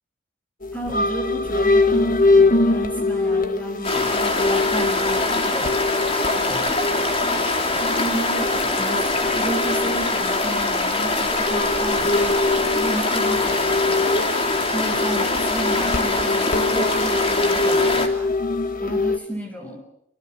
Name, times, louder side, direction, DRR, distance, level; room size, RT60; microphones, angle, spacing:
sound 1, 0.6-19.2, left 3 dB, 45° left, 1.6 m, -24 dB
voice 1, 0.7-5.7 6.3-7.1 8.0-14.1 14.7-18.1 18.8-19.8, right 1 dB, 5° left, 3 dB, 6.7 m, -32 dB
sound 2, 3.8-18.1, left 2 dB, 30° left, 3.3 m, -23 dB
27.5 x 25.5 x 8.1 m, 0.78 s
head